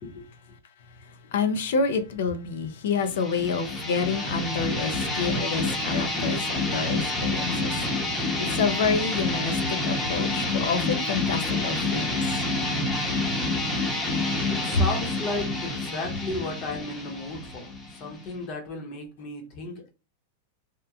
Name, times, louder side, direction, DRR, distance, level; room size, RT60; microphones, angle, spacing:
voice 1, 1.1-12.2, left 5 dB, 75° left, 0.5 m, -28 dB
sound 1, 3.0-18.4, left 2 dB, 15° left, 0.9 m, -28 dB
voice 2, 14.5-19.9, left 2 dB, 45° left, 0.9 m, -34 dB
2.9 x 2.1 x 2.3 m
hypercardioid pair, 125°, 0 cm